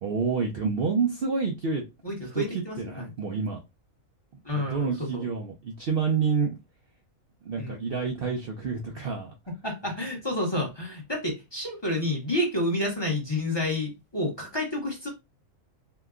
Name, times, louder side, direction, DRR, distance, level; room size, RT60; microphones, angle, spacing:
voice 1, 0.0-1.8 2.3-3.6 4.5-6.6 7.4-9.3, right 5 dB, 55° right, 0.7 m, -28 dB
voice 2, 2.0-3.1 4.4-5.2 7.6-7.8 9.6-15.1, left 1 dB, 20° left, 0.9 m, -29 dB
2.9 x 2.2 x 3.5 m
omnidirectional pair, 1.4 m